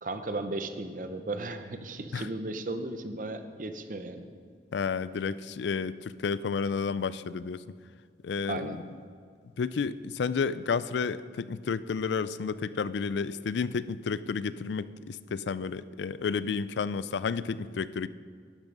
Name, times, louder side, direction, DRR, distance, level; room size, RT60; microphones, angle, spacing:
voice 1, 0.0-4.3 8.5-8.8, right 2 dB, 50° right, 9 dB, 0.8 m, -35 dB
voice 2, 4.7-7.6 8.2-8.8 9.6-18.1, left 5 dB, 85° left, 16 dB, 0.4 m, -31 dB
11.5 x 10.5 x 5.4 m, 2.1 s
head